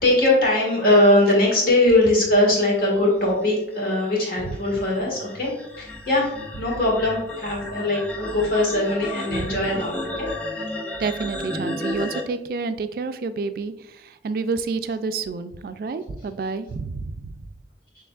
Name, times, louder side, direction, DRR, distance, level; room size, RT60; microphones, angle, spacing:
voice 1, 0.0-10.3, left 1 dB, 50° left, -3 dB, 1.7 m, -21 dB
sound 1, 2.9-12.2, left 1 dB, 10° left, 0.6 m, -33 dB
voice 2, 11.0-17.4, right 4 dB, 55° right, 11 dB, 0.3 m, -29 dB
6.8 x 3.1 x 2.3 m, 0.86 s
head